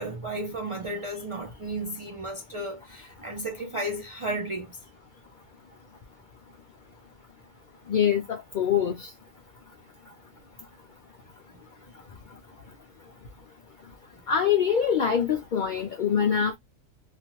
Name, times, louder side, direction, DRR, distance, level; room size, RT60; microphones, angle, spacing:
voice 1, 0.0-4.8, right 1 dB, 60° right, 0.3 m, -33 dB
voice 2, 7.9-9.1 14.3-16.6, left 8 dB, 65° left, 0.4 m, -24 dB
2.7 x 2.4 x 2.8 m
omnidirectional pair, 1.4 m